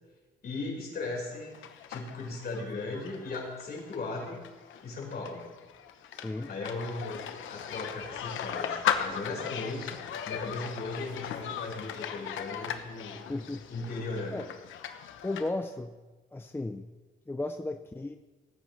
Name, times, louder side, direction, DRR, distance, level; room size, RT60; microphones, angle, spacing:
voice 1, 0.4-1.6 1.9-4.4 4.8-5.5 6.5-10.0 10.2-13.2 13.7-14.5, left 3 dB, 50° left, -2 dB, 4.8 m, -37 dB
sound 1, 1.3-15.5, left 9 dB, 80° left, 1.0 m, -38 dB
voice 2, 6.1-6.5 13.3-13.7 14.3-14.5 15.2-15.9 16.3-16.9 17.3-18.2, left 2 dB, 10° left, 7 dB, 0.6 m, -35 dB
18.5 x 9.2 x 3.3 m, 1.2 s
cardioid pair, 90°, 20 cm